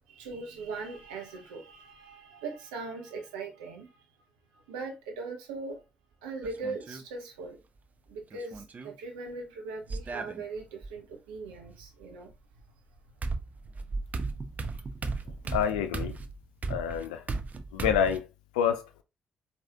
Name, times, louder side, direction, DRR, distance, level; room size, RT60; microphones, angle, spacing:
voice 1, 0.1-4.0 4.5-5.8 6.2-7.6 8.1-12.3, right 3 dB, 75° right, 0.8 m, -40 dB
sound 1, 6.4-7.0 8.3-8.9 9.9-10.9 12.6-12.7 13.2-18.2, right 3 dB, 35° right, 0.5 m, -35 dB
voice 2, 15.5-16.2 16.7-17.2 17.7-18.3 18.5-19.0, left 8 dB, 75° left, 0.4 m, -27 dB
4.7 x 2.6 x 2.8 m
figure-of-eight pair, 40°, 4 cm